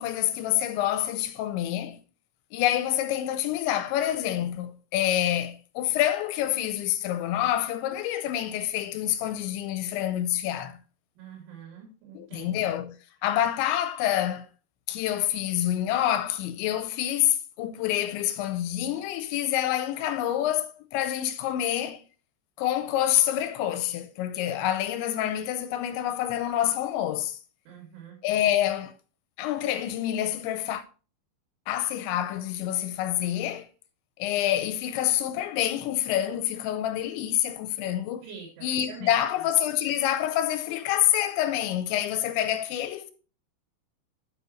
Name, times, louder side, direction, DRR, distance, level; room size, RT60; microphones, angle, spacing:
voice 1, 0.0-2.0 2.5-10.8 12.1-14.5 14.9-22.0 22.6-27.4 28.2-28.9 29.4-30.8 31.7-33.7 34.2-38.3 38.6-43.1, left 12 dB, 80° left, 2.9 m, -27 dB
voice 2, 11.2-12.6 27.7-28.2 38.2-39.2, right 6 dB, 75° right, 5.0 m, -45 dB
9.9 x 7.8 x 3.1 m
omnidirectional pair, 5.5 m